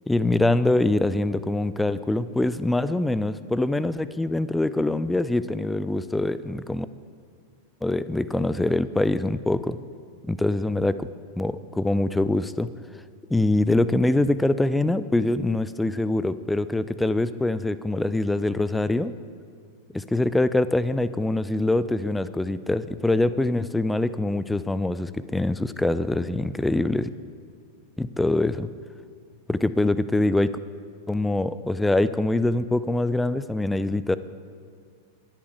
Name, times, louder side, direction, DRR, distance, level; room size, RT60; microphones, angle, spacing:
voice 1, 0.1-6.9 7.8-9.8 10.2-11.1 11.4-12.7 13.3-19.1 19.9-27.1 28.0-28.7 29.5-30.5 31.1-34.2, left 2 dB, 5° left, 15 dB, 0.4 m, -24 dB
22.5 x 8.7 x 3.4 m, 2.1 s
figure-of-eight pair, 90°, 0 cm